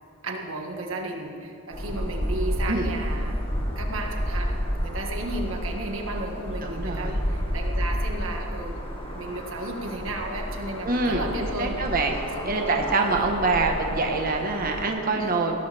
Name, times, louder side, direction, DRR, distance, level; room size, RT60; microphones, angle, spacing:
voice 1, 0.2-3.4 3.8-8.8 9.1-11.8 12.4-13.3 15.1-15.6, right 2 dB, 65° right, 1 dB, 1.8 m, -34 dB
sound 1, 1.7-14.9, equal, 25° left, 1.9 m, -30 dB
voice 2, 6.6-7.2 10.8-11.3 11.6-12.2 12.4-15.6, right 3 dB, 40° right, 2 dB, 1.4 m, -25 dB
20.5 x 16.5 x 3.5 m, 2.6 s
head